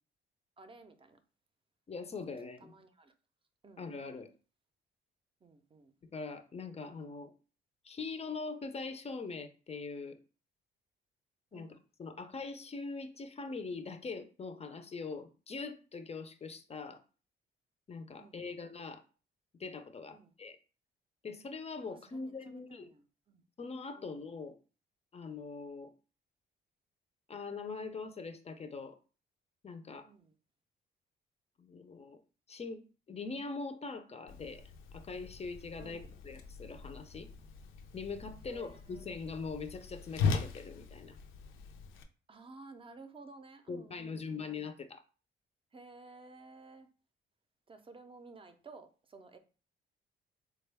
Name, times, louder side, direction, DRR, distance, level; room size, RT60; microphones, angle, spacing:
voice 1, 0.6-1.2 2.6-3.1 3.6-3.9 5.4-5.9 11.5-11.8 18.2-18.7 20.1-20.3 21.9-23.4 24.0-24.2 30.0-30.3 35.8-36.1 38.4-39.2 42.3-44.5 45.7-46.9 47.7-49.4, right 3 dB, 25° right, 0.5 m, -54 dB
voice 2, 1.9-2.7 3.8-4.3 6.1-7.3 7.8-10.2 11.5-17.0 17.9-19.0 19.6-20.6 21.2-22.9 23.6-24.5 25.1-25.9 27.3-29.0 29.6-30.1 31.6-32.2 32.5-32.8 33.1-34.6 34.9-37.3 37.9-41.2 43.7-45.0, left 4 dB, 30° left, 0.5 m, -42 dB
Whoosh swoosh swish, 34.3-42.0, left 5 dB, 85° left, 0.5 m, -39 dB
3.6 x 2.2 x 3.3 m
cardioid pair, 90°, 20 cm